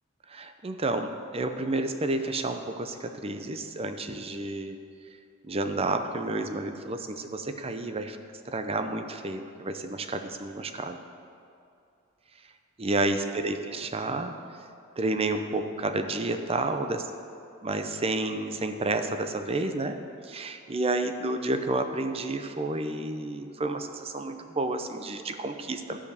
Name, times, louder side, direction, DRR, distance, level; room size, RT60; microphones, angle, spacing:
voice 1, 0.3-4.8 5.4-8.2 8.5-11.0 12.8-14.3 15.0-17.1 17.6-20.0 20.2-26.0, right 2 dB, 30° right, 7 dB, 0.6 m, -30 dB
13.5 x 5.1 x 6.8 m, 2.5 s
head